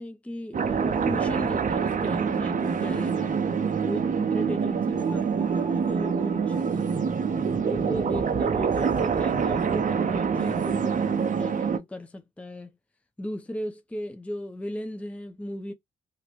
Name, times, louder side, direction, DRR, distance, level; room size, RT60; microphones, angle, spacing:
voice 1, 0.0-3.5 3.8-7.1 7.7-12.8 13.2-15.7, left 1 dB, 5° left, 0.5 m, -36 dB
sound 1, 0.5-11.8, right 6 dB, 40° right, 0.6 m, -26 dB
2.4 x 2.1 x 2.8 m
supercardioid pair, 55°, 21 cm